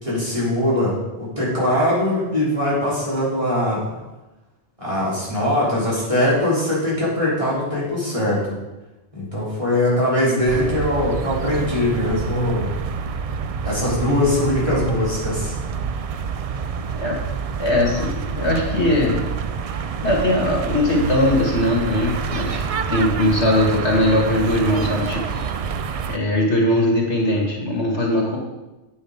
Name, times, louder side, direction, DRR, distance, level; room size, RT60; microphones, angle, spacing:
voice 1, 0.0-3.9 4.8-8.5 9.1-12.7 13.6-15.5, left 1 dB, 30° right, -8 dB, 4.0 m, -21 dB
sound 1, 10.5-26.2, right 6 dB, 55° right, 0.4 m, -27 dB
voice 2, 17.6-19.2 20.0-25.2 26.1-28.4, left 1 dB, 85° left, -1 dB, 2.6 m, -20 dB
8.9 x 8.4 x 5.1 m, 1.1 s
omnidirectional pair, 1.1 m